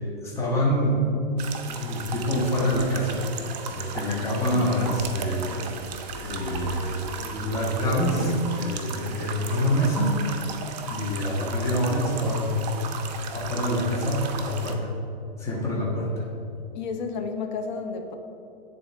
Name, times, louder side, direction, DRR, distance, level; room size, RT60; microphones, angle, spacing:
voice 1, 0.2-1.0 1.7-5.6 6.1-10.2 10.9-12.6 13.3-14.8 15.4-16.2, equal, 10° left, -4 dB, 0.9 m, -26 dB
sound 1, 1.4-14.7, right 5 dB, 45° right, 0.6 m, -36 dB
sound 2, 2.1-2.8 4.4-5.1 6.2-7.0 7.9-8.5, left 6 dB, 85° left, 0.5 m, -37 dB
voice 2, 16.7-18.2, left 5 dB, 50° left, 5 dB, 0.7 m, -31 dB
9.0 x 3.8 x 3.4 m, 2.7 s
hypercardioid pair, 140°, 30 cm